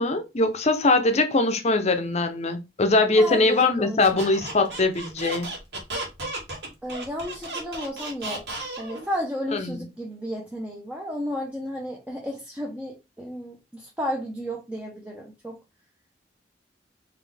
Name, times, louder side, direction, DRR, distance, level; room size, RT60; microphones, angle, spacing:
voice 1, 0.0-5.5 9.5-9.9, left 2 dB, 40° left, 0.7 m, -22 dB
voice 2, 3.2-4.3 6.8-8.4 8.8-15.6, equal, 10° right, 0.8 m, -33 dB
Squeak, 4.0-9.1, right 2 dB, 75° right, 2.0 m, -34 dB
4.1 x 3.1 x 3.3 m
head